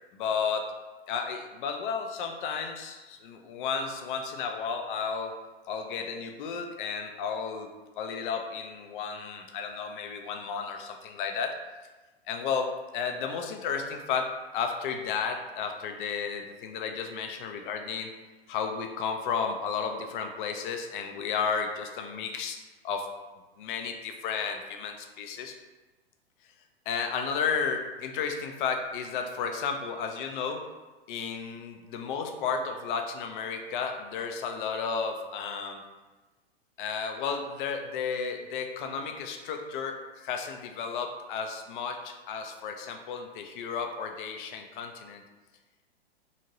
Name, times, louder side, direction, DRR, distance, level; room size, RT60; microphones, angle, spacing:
voice 1, 0.1-0.7 1.1-5.4 5.7-11.6 12.3-18.1 18.5-22.6 22.8-23.1 23.6-25.6 26.9-30.7 31.1-35.8 36.8-45.2, left 6 dB, 55° left, 4 dB, 0.4 m, -33 dB
2.8 x 2.6 x 2.8 m, 1.2 s
hypercardioid pair, 110°, 31 cm